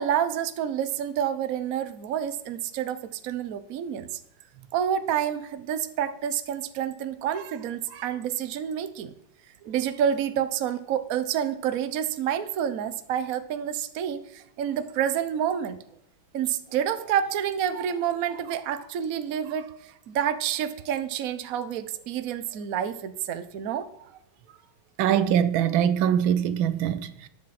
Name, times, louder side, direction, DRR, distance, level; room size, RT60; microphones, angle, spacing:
voice 1, 0.0-4.2 4.7-9.1 9.6-15.8 16.3-24.1, right 9 dB, 55° right, 1.1 m, -28 dB
voice 2, 25.0-27.3, right 9 dB, 85° right, 1.6 m, -23 dB
13.5 x 9.9 x 4.2 m
omnidirectional pair, 2.2 m